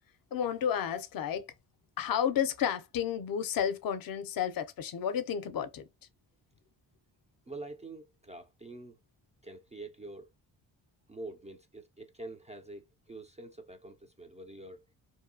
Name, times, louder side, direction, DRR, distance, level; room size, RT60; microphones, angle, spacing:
voice 1, 0.3-1.5 2.0-5.9, left 8 dB, 50° left, 0.5 m, -31 dB
voice 2, 7.5-9.0 9.4-10.3 11.1-14.8, right 2 dB, 15° right, 0.3 m, -46 dB
2.7 x 2.3 x 2.6 m
supercardioid pair, 55°, 47 cm